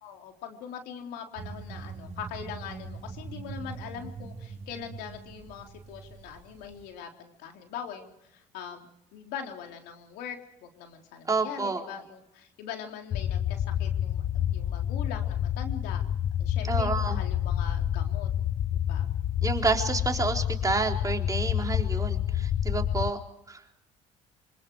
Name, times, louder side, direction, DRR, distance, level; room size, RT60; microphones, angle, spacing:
voice 1, 0.0-16.0 16.4-18.3 18.7-19.1, left 8 dB, 75° left, 3 dB, 3.7 m, -42 dB
sound 1, 1.4-6.9, right 4 dB, 55° right, 5.4 m, -42 dB
voice 2, 11.3-11.8 16.6-17.2 19.4-23.2 23.5-23.6, right 3 dB, 20° right, 3 dB, 3.9 m, -29 dB
sound 2, 13.1-23.1, left 10 dB, 50° left, 1.0 m, -28 dB
26.0 x 26.0 x 4.8 m, 0.83 s
supercardioid pair, 75°, 16 cm